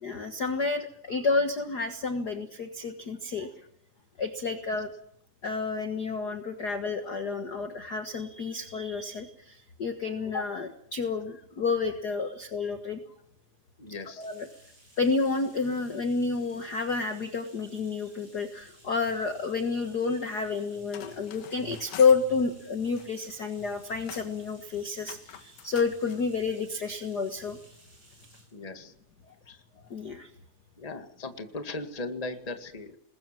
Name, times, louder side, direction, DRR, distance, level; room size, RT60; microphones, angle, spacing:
voice 1, 0.0-3.5 4.2-4.9 5.4-13.0 14.2-14.5 15.0-27.6 29.9-30.3, left 4 dB, 55° left, 7 dB, 1.1 m, -30 dB
voice 2, 13.8-14.3 28.5-28.9 29.4-29.6 30.8-33.0, left 2 dB, 15° left, 7 dB, 1.3 m, -38 dB
Bathtub (filling or washing), 13.9-28.6, right 1 dB, 30° right, 8.0 m, -58 dB
sound 1, 20.7-22.2 22.7-23.4 23.6-24.4 25.0-26.2, left 10 dB, 75° left, 3.2 m, -46 dB
27.5 x 21.0 x 7.5 m, 0.69 s
omnidirectional pair, 4.0 m